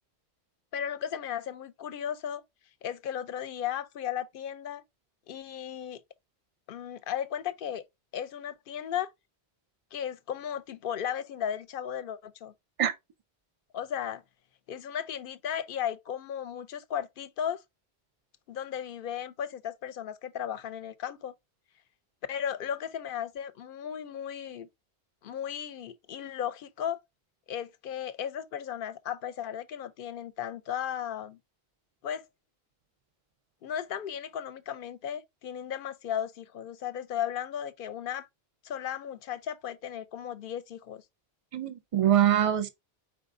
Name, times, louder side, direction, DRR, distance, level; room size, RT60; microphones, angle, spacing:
voice 1, 0.7-2.4 2.8-4.8 5.3-6.0 6.7-7.8 8.1-9.1 9.9-12.5 13.7-14.2 14.7-17.6 18.5-21.3 22.3-24.7 25.2-27.0 27.5-31.4 32.0-32.3 33.6-38.3 38.6-41.0, left 9 dB, 65° left, 0.7 m, -35 dB
voice 2, 41.5-42.7, right 11 dB, 40° right, 0.5 m, -24 dB
4.9 x 4.1 x 2.5 m
omnidirectional pair, 1.1 m